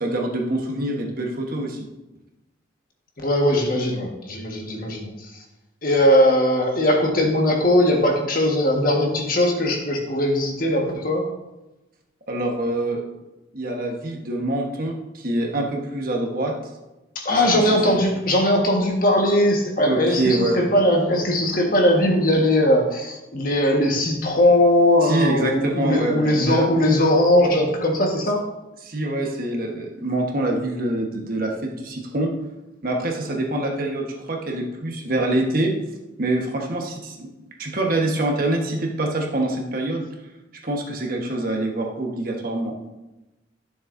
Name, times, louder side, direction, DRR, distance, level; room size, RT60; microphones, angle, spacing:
voice 1, 0.0-1.9 12.3-13.0 13.5-16.5 17.3-18.0 19.8-20.6 25.0-26.7 28.8-32.3 32.8-35.7 36.2-37.3 37.6-40.0 40.6-42.9, right 1 dB, 50° right, 1 dB, 1.3 m, -25 dB
voice 2, 3.2-5.3 5.8-11.2 17.1-28.4, left 1 dB, 50° left, 1 dB, 1.5 m, -19 dB
12.5 x 7.1 x 2.7 m, 1.0 s
head